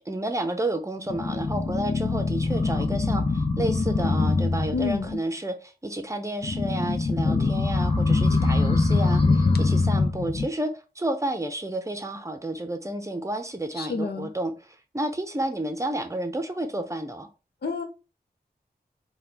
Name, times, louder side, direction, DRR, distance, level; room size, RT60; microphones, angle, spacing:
voice 1, 0.1-17.3, right 1 dB, 20° right, 0.6 m, -31 dB
sound 1, 1.1-5.1 6.4-10.4, left 3 dB, 30° left, 0.9 m, -23 dB
voice 2, 4.7-5.2 13.8-14.3 17.6-17.8, left 4 dB, 75° left, 0.7 m, -29 dB
4.2 x 2.3 x 3.5 m
wide cardioid pair, 85°, 17 cm